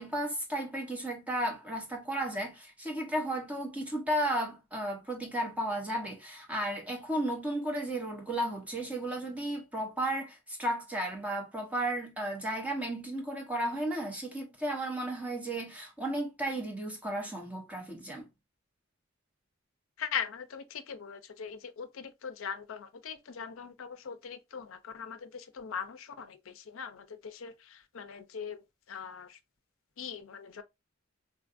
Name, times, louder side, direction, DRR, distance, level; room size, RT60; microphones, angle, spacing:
voice 1, 0.0-18.3, right 1 dB, 5° right, 1.0 m, -34 dB
voice 2, 20.0-29.4 30.0-30.6, left 7 dB, 70° left, 0.5 m, -41 dB
3.7 x 2.4 x 2.4 m
head